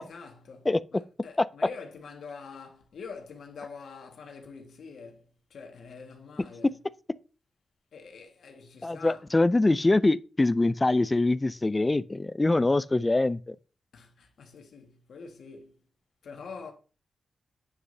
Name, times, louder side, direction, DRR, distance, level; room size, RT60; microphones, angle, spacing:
voice 1, 0.0-6.8 7.9-9.2 13.9-15.8 16.2-16.7, left 5 dB, 75° left, 1.7 m, -45 dB
voice 2, 8.8-13.6, left 2 dB, 15° left, 0.3 m, -24 dB
9.6 x 6.4 x 2.7 m
wide cardioid pair, 140°, 0 cm